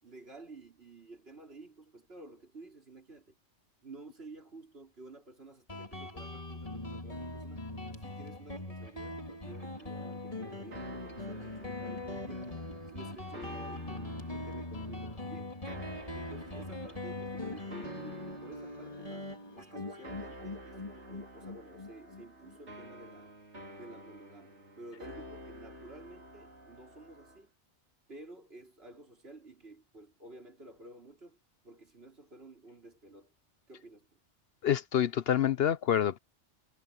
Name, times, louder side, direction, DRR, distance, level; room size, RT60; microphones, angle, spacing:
voice 1, 0.0-3.4 3.8-7.6 8.0-12.6 12.9-15.5 16.1-23.3 23.7-27.5 28.1-31.4 31.6-33.3 33.7-34.2, right 2 dB, 60° right, 4.5 m, -52 dB
Guitar, 5.7-22.9, left 2 dB, 30° left, 3.2 m, -41 dB
sound 1, 9.4-27.4, equal, 75° right, 3.8 m, -50 dB
voice 2, 34.6-36.2, left 10 dB, 60° left, 0.8 m, -27 dB
omnidirectional pair, 1.2 m